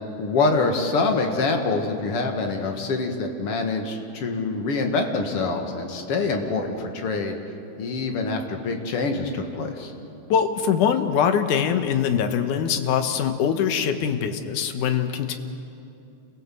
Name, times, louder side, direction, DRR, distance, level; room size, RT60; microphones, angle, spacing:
voice 1, 0.2-7.3 7.8-9.9, left 3 dB, 55° left, 4 dB, 2.5 m, -25 dB
voice 2, 10.3-15.4, left 8 dB, 90° left, 8 dB, 2.7 m, -23 dB
28.5 x 17.0 x 7.7 m, 2.8 s
omnidirectional pair, 3.5 m